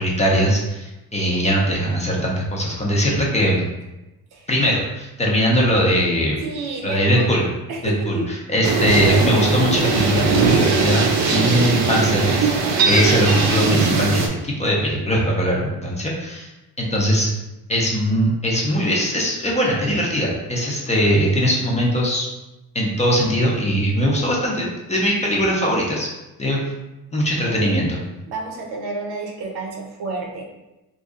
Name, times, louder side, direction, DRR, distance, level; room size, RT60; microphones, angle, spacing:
voice 1, 0.0-3.6 4.5-6.4 6.8-7.4 7.8-12.5 12.9-16.5 16.8-17.3 17.7-22.3 22.7-26.1 26.4-26.6 27.1-28.0, equal, 20° left, -3 dB, 0.6 m, -20 dB
voice 2, 6.4-7.3 7.7-8.2 27.6-27.8 28.3-30.4, right 3 dB, 80° right, 1 dB, 0.8 m, -30 dB
sound 1, 8.6-14.3, right 4 dB, 45° right, 0.5 m, -20 dB
2.9 x 2.6 x 3.6 m, 0.99 s
cardioid pair, 145°, 38 cm